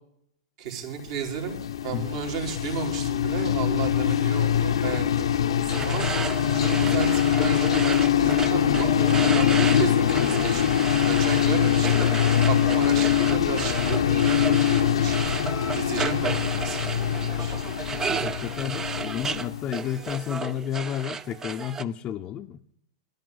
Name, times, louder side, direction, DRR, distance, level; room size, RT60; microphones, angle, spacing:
voice 1, 0.6-6.1 6.5-10.6 11.0-12.0 12.5-15.2 15.7-17.6, right 7 dB, 60° right, 4.0 m, -33 dB
sound 1, 1.0-20.0, left 10 dB, 85° left, 1.1 m, -23 dB
sound 2, 5.7-21.8, right 5 dB, 20° right, 0.6 m, -33 dB
voice 2, 17.9-22.6, left 9 dB, 35° left, 0.8 m, -32 dB
12.5 x 11.0 x 7.9 m
hypercardioid pair, 120°, 3 cm